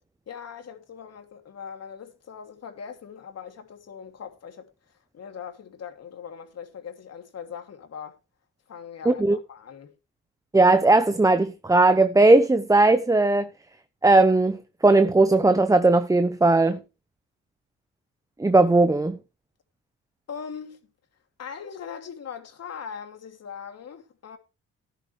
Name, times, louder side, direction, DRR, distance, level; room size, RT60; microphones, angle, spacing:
voice 1, 0.3-4.7 5.1-8.2 8.7-9.9 20.3-20.9 21.4-24.4, left 7 dB, 55° left, 2.9 m, -40 dB
voice 2, 9.0-9.4 10.5-13.5 14.0-14.6 14.8-16.8 18.4-19.2, right 2 dB, 10° right, 0.8 m, -18 dB
14.0 x 10.5 x 3.4 m
cardioid pair, 90°, 30 cm